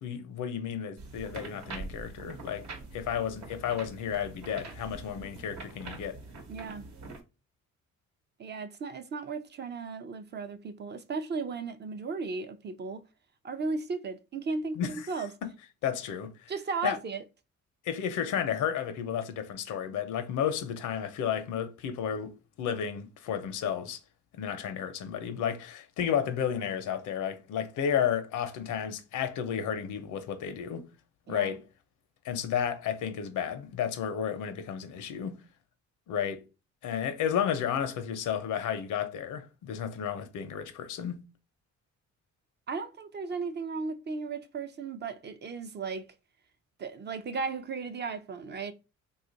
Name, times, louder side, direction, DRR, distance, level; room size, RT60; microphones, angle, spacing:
voice 1, 0.0-2.7 2.9-6.2 14.8-15.1 15.4-15.5 15.8-16.5 16.8-17.0 17.8-24.0 24.4-30.9 31.3-31.6 32.2-35.4 36.1-36.4 36.8-41.2, left 8 dB, 80° left, 0.7 m, -32 dB
sound 1, 1.0-7.2, right 3 dB, 65° right, 1.0 m, -44 dB
voice 2, 6.5-6.8 8.4-13.0 13.4-15.3 16.5-17.2 31.3-31.6 42.7-46.1 46.8-48.7, right 4 dB, 35° right, 0.5 m, -35 dB
2.8 x 2.4 x 3.9 m
cardioid pair, 90°, 30 cm